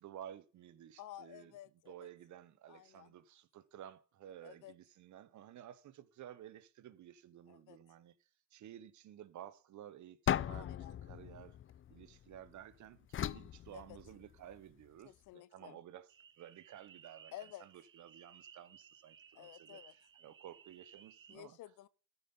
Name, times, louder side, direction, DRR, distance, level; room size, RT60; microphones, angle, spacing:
voice 1, 0.0-1.5 1.9-8.2 8.5-11.6 11.9-16.1 16.4-17.3 17.6-19.8 20.2-21.6, right 11 dB, 70° right, 1.0 m, -54 dB
voice 2, 1.0-2.1 2.7-3.1 4.4-4.7 7.5-7.8 10.5-11.0 13.7-14.0 15.0-15.8 17.3-17.6 19.3-19.9 21.3-21.9, left 13 dB, 90° left, 0.8 m, -53 dB
sound 1, 10.3-12.5 13.1-14.5, left 10 dB, 45° left, 0.5 m, -38 dB
sound 2, 16.1-21.4, right 7 dB, 40° right, 1.0 m, -60 dB
13.0 x 5.6 x 5.3 m
cardioid pair, 90°, 30 cm